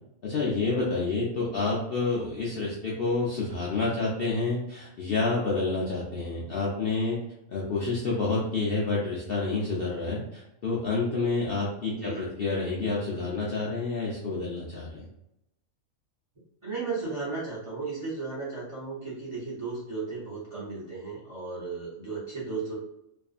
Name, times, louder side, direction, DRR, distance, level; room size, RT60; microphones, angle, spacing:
voice 1, 0.2-7.2 7.5-15.1, left 3 dB, 65° left, -5 dB, 0.6 m, -29 dB
voice 2, 11.9-12.3 16.6-22.8, right 4 dB, 35° right, -7 dB, 0.5 m, -35 dB
2.5 x 2.4 x 2.4 m, 0.85 s
omnidirectional pair, 1.5 m